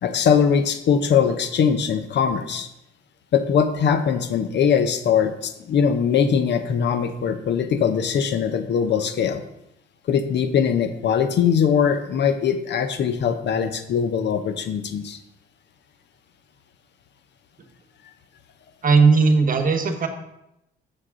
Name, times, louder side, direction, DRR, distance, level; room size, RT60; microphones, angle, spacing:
voice 1, 0.0-2.7 3.3-9.4 10.1-15.2, left 7 dB, 60° left, 9 dB, 0.8 m, -21 dB
voice 2, 18.8-20.1, right 4 dB, 45° right, 6 dB, 1.2 m, -17 dB
7.6 x 6.6 x 3.7 m, 0.83 s
cardioid pair, 90°, 20 cm